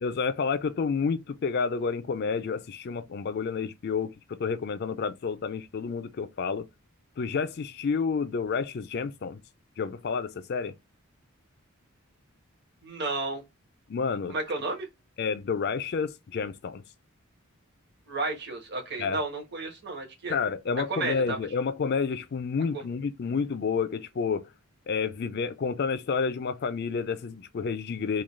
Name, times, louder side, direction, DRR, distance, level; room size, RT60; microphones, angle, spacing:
voice 1, 0.0-6.7 7.2-9.4 9.8-10.7 13.9-14.4 15.2-16.8 19.0-19.2 20.3-24.5 24.9-28.2, left 5 dB, 50° left, 0.4 m, -30 dB
voice 2, 12.8-13.4 14.3-14.9 18.1-20.3 20.9-21.4 22.7-22.8, right 3 dB, 50° right, 1.3 m, -32 dB
3.7 x 2.3 x 3.1 m
head